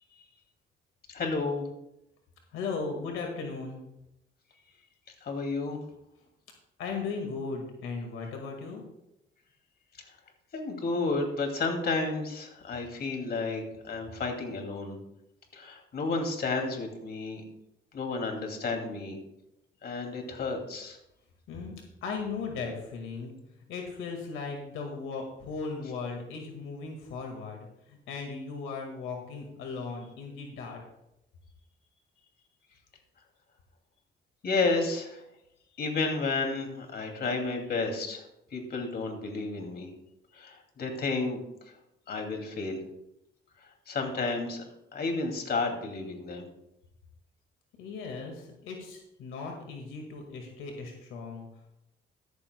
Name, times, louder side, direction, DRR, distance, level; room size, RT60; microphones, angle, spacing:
voice 1, 1.1-1.7 5.2-5.8 10.5-15.0 15.5-17.4 17.9-19.2 19.8-21.0 34.4-35.2 35.8-38.2 38.5-39.9 40.3-41.4 42.1-42.8 43.9-44.6 44.9-46.4, left 3 dB, 55° left, 3 dB, 2.6 m, -31 dB
voice 2, 2.5-3.8 6.8-8.8 21.5-21.8 22.0-23.3 23.7-30.8 47.8-51.5, left 4 dB, 90° left, 2 dB, 1.9 m, -37 dB
13.5 x 13.0 x 2.3 m, 0.84 s
cardioid pair, 90°, 20 cm